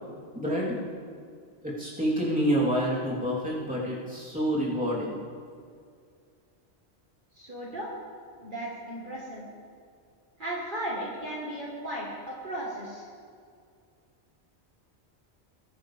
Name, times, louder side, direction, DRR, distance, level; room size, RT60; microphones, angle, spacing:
voice 1, 0.3-0.8 1.6-5.2, equal, 5° right, -7 dB, 3.3 m, -28 dB
voice 2, 7.3-7.9 8.4-9.5 10.4-13.1, right 1 dB, 45° right, -5 dB, 1.9 m, -36 dB
20.0 x 10.5 x 3.5 m, 2.2 s
omnidirectional pair, 1.1 m